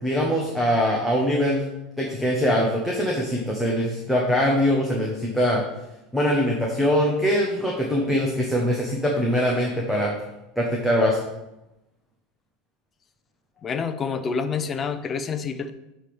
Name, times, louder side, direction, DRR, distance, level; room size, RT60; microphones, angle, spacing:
voice 1, 0.0-1.7 2.0-5.6 6.1-10.1 10.6-11.2, equal, ahead, -2 dB, 1.0 m, -22 dB
voice 2, 13.6-15.7, left 5 dB, 20° left, 9 dB, 0.5 m, -27 dB
8.1 x 3.5 x 6.0 m, 0.93 s
supercardioid pair, 155°, 0 cm